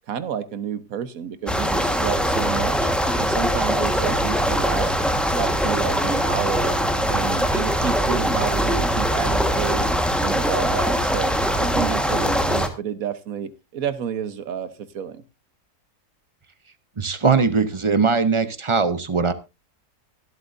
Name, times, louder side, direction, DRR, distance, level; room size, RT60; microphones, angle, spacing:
voice 1, 0.1-2.9 3.2-5.0 5.4-6.8 7.1-9.9 10.2-15.2, right 8 dB, 65° right, 1.4 m, -30 dB
sound 1, 1.5-12.7, equal, ahead, 1.2 m, -22 dB
voice 2, 17.0-19.3, right 5 dB, 30° right, 0.5 m, -20 dB
23.0 x 8.2 x 2.6 m
omnidirectional pair, 1.6 m